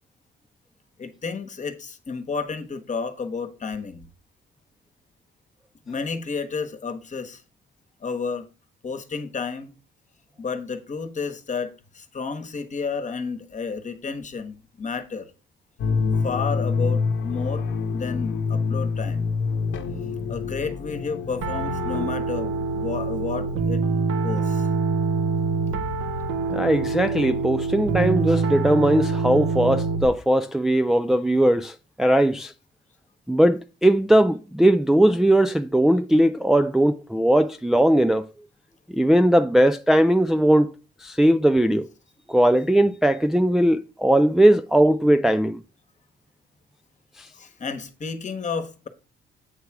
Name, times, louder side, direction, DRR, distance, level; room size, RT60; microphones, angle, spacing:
voice 1, 1.0-4.0 5.9-7.4 8.0-8.4 8.8-9.7 10.4-15.3 16.2-17.6 17.9-19.2 20.3-23.8 24.2-24.7 47.4-48.9, left 5 dB, 40° left, 1.2 m, -31 dB
sound 1, 15.8-22.1, left 4 dB, 75° left, 0.9 m, -26 dB
Piano, 21.4-30.1, right 3 dB, 85° right, 1.1 m, -25 dB
voice 2, 26.5-32.5 33.3-38.2 38.9-40.7 41.0-41.9 42.3-45.6 47.2-47.3, right 1 dB, ahead, 0.3 m, -19 dB
8.1 x 3.2 x 5.9 m
cardioid pair, 90°, 20 cm